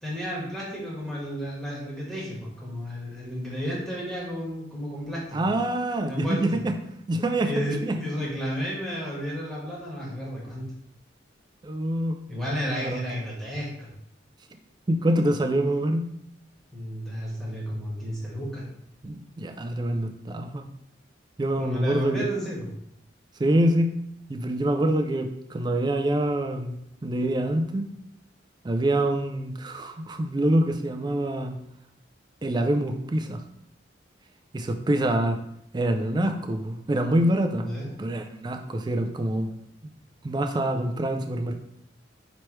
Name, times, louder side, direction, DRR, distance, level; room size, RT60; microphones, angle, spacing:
voice 1, 0.0-5.4 6.1-6.6 7.4-10.6 12.3-13.9 16.7-18.6 21.6-22.7 37.6-38.0, equal, ahead, -5 dB, 1.2 m, -32 dB
voice 2, 5.3-6.7 7.1-7.5 7.8-8.0 11.6-12.2 12.7-13.0 14.9-16.0 19.0-20.7 21.4-22.2 23.4-23.9 24.3-26.7 27.0-27.9 28.6-31.5 32.4-33.4 34.5-35.4 35.7-37.7 38.0-39.5 40.2-41.6, right 1 dB, 25° right, 6 dB, 0.3 m, -25 dB
3.1 x 3.1 x 4.5 m, 0.73 s
head